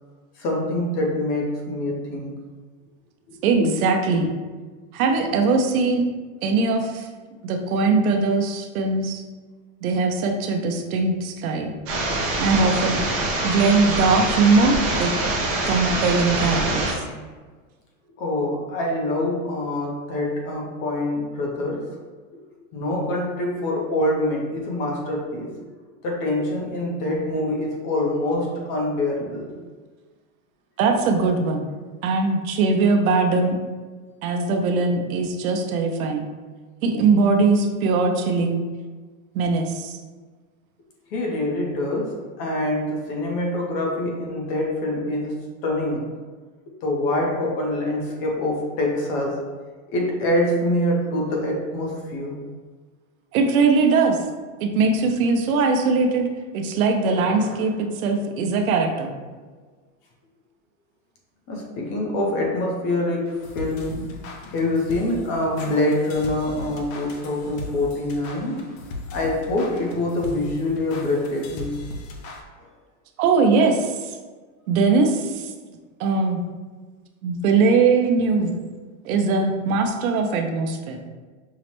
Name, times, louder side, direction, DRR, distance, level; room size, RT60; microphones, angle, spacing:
voice 1, 0.4-2.3 18.2-21.9 22.7-25.5 26.0-29.5 41.1-45.3 45.6-46.1 46.8-49.4 49.9-52.4 57.2-57.7 61.5-63.3 63.5-64.1 64.5-68.6 69.1-71.8, left 1 dB, 30° left, -1 dB, 0.6 m, -25 dB
voice 2, 3.4-4.3 4.9-6.0 6.4-7.1 7.4-9.2 9.8-11.7 12.4-13.0 13.4-15.1 15.7-17.0 30.8-31.7 32.0-33.6 34.2-36.3 36.8-38.6 39.3-40.0 53.3-54.2 54.6-56.3 56.5-59.1 73.2-73.9 74.7-75.5 76.0-76.4 77.2-78.5 79.0-81.0, right 4 dB, 90° right, 4 dB, 0.7 m, -21 dB
sound 1, 11.9-16.9, right 2 dB, 20° right, 0.3 m, -24 dB
sound 2, 63.3-72.4, left 2 dB, 65° left, 0.7 m, -38 dB
5.5 x 2.0 x 3.0 m, 1.4 s
supercardioid pair, 165°, 41 cm